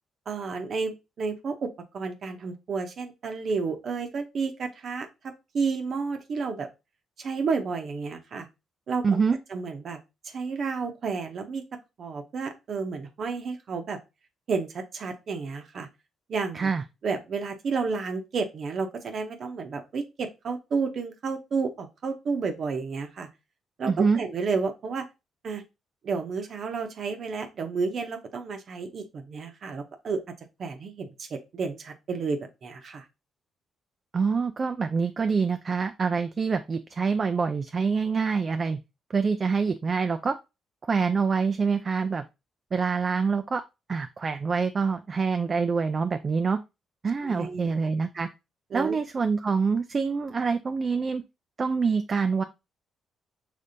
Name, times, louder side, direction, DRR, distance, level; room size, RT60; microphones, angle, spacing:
voice 1, 0.3-6.7 7.2-8.5 8.9-9.1 9.5-10.0 10.2-11.6 12.0-14.0 14.5-15.9 16.3-16.7 17.0-23.3 23.8-25.0 25.4-25.6 26.0-30.2 30.6-33.0 47.2-47.7 48.7-49.0, right 4 dB, 55° right, 6 dB, 0.8 m, -31 dB
voice 2, 9.0-9.4 16.5-16.8 23.9-24.2 34.1-38.8 39.1-40.4 40.8-42.2 42.7-43.6 43.9-46.6 47.0-48.3 48.7-51.2 51.6-52.4, right 5 dB, 35° right, 8 dB, 0.3 m, -26 dB
5.1 x 3.3 x 2.6 m, 0.25 s
cardioid pair, 90°, 0 cm